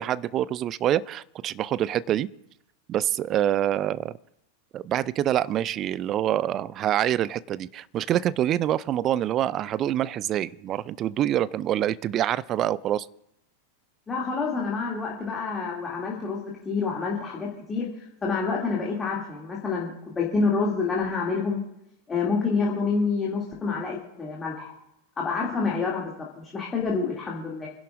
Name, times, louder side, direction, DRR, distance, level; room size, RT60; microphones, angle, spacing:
voice 1, 0.0-2.3 2.9-4.2 4.7-13.1, right 11 dB, 30° right, 19 dB, 0.4 m, -26 dB
voice 2, 14.1-21.6 22.1-24.7 25.2-27.7, left 4 dB, 15° left, -3 dB, 2.5 m, -28 dB
29.0 x 11.0 x 2.5 m, 0.82 s
figure-of-eight pair, 90°, 0 cm